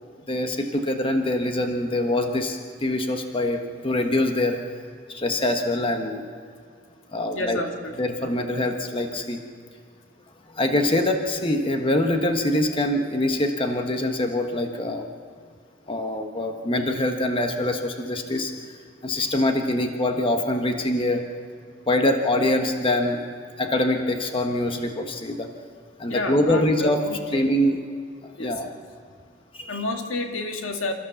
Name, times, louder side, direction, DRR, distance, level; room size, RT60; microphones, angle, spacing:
voice 1, 0.3-4.6 5.1-6.2 7.1-7.6 8.0-9.4 10.5-15.1 15.9-21.2 21.9-23.2 23.6-25.5 26.0-27.0 27.3-27.8 28.2-28.7 29.5-29.8, left 1 dB, 25° left, 4 dB, 1.3 m, -24 dB
voice 2, 7.3-8.2 26.1-27.5 28.4-28.5 29.7-30.9, left 2 dB, 80° left, 3 dB, 2.2 m, -30 dB
27.5 x 14.5 x 7.1 m, 2.2 s
head